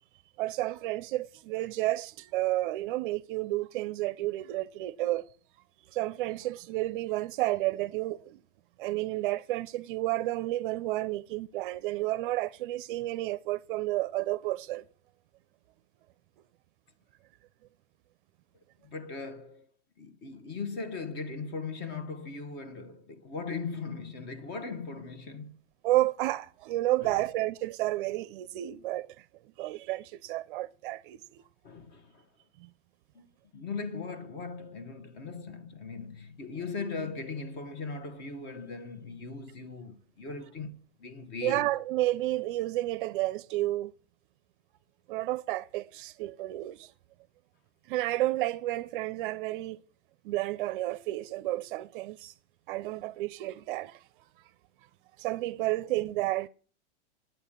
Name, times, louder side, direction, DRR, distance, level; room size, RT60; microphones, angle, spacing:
voice 1, 0.4-5.3 5.9-8.4 8.8-14.8 25.8-29.1 29.6-31.4 32.6-32.7 41.4-43.9 45.1-46.9 47.9-49.8 50.2-52.3 52.7-54.0 55.2-56.5, right 16 dB, 45° right, 0.5 m, -31 dB
voice 2, 18.8-19.7 20.0-25.6 27.0-27.1 31.6-32.2 33.1-33.3 33.5-41.7, left 4 dB, 30° left, 1.1 m, -39 dB
9.0 x 8.1 x 7.3 m
supercardioid pair, 145°, 35 cm